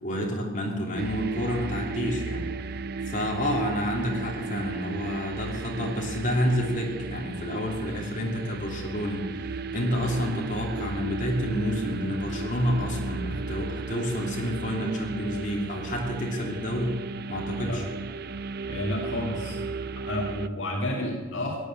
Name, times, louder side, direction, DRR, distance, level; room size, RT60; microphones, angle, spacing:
voice 1, 0.0-2.4 3.1-17.0 17.3-17.8, equal, 40° left, -1 dB, 3.0 m, -29 dB
sound 1, 1.0-20.5, right 4 dB, 50° right, 0.5 m, -35 dB
voice 2, 18.6-19.6 20.1-21.6, left 1 dB, 65° left, -1 dB, 2.3 m, -30 dB
17.0 x 9.5 x 7.5 m, 1.3 s
head